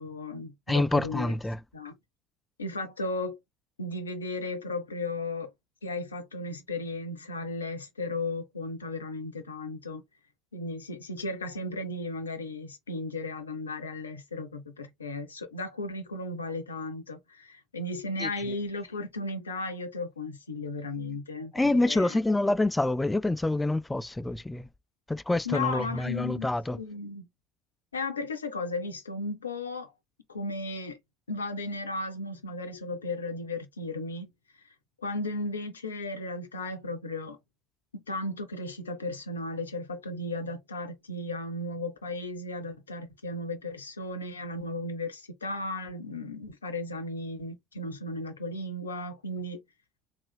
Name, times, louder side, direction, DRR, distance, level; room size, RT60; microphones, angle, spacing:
voice 1, 0.0-1.3 1.7-2.0 2.6-3.4 3.8-5.5 5.8-10.0 10.5-22.2 25.4-27.3 27.9-29.9 30.3-31.0 31.3-34.3 35.0-37.4 37.9-49.6, left 2 dB, 85° left, 0.5 m, -35 dB
voice 2, 0.7-1.6 18.2-18.3 21.5-24.7 25.1-26.8, left 2 dB, 10° left, 0.3 m, -26 dB
3.6 x 2.5 x 2.2 m
figure-of-eight pair, 60°, 0 cm